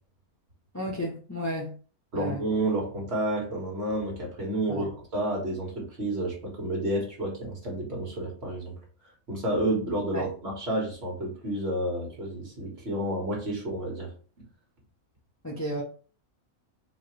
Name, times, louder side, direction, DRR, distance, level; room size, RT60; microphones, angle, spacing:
voice 1, 0.7-1.7 2.1-2.4 4.7-4.9 10.1-10.2 15.4-15.8, equal, 15° left, -2 dB, 0.5 m, -32 dB
voice 2, 2.1-8.7 9.3-14.1, right 1 dB, 45° right, -1 dB, 1.8 m, -30 dB
4.7 x 3.3 x 3.1 m, 0.40 s
omnidirectional pair, 1.6 m